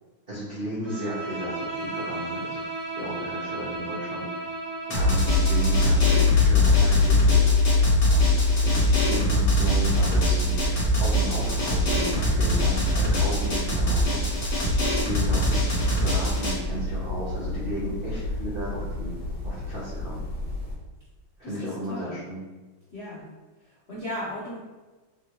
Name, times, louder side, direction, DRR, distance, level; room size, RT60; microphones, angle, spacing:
voice 1, 0.3-2.6 3.0-4.5 4.9-7.4 8.1-8.3 8.6-14.2 14.9-19.1 19.4-20.2 21.4-22.4, equal, 75° right, -8 dB, 0.5 m, -34 dB
Bowed string instrument, 0.8-6.0, right 2 dB, 50° right, 1.5 m, -34 dB
Drum, 4.9-16.5, left 1 dB, 45° left, 1.1 m, -24 dB
sound 1, 4.9-20.7, left 2 dB, 20° right, 1.4 m, -25 dB
voice 2, 22.9-23.3 23.9-24.6, equal, 75° left, -8 dB, 0.5 m, -35 dB
3.4 x 2.7 x 2.9 m, 1.2 s
omnidirectional pair, 2.2 m